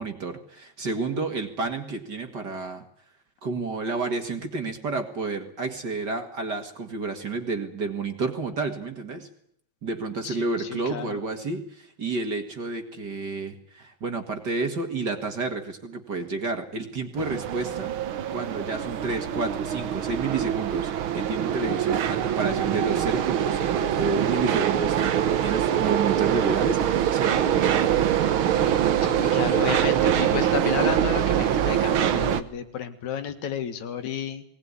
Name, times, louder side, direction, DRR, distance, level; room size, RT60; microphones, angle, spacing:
voice 1, 0.0-2.8 3.4-9.3 9.8-27.9, right 3 dB, 40° right, 6 dB, 2.2 m, -30 dB
voice 2, 10.2-11.2 29.0-34.4, left 8 dB, 75° left, 9 dB, 3.0 m, -32 dB
sound 1, 17.2-32.4, right 10 dB, 60° right, 1.5 m, -24 dB
21.0 x 19.0 x 9.7 m, 0.70 s
omnidirectional pair, 3.3 m